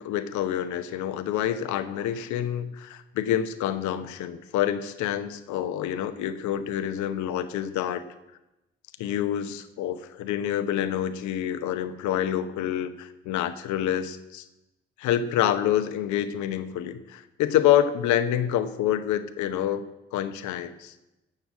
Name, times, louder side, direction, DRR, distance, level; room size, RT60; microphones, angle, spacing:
voice 1, 0.0-8.0 9.0-14.4 15.0-19.8 20.1-20.9, left 10 dB, 70° left, 10 dB, 0.9 m, -27 dB
10.5 x 6.8 x 7.3 m, 0.96 s
hypercardioid pair, 40°, 30 cm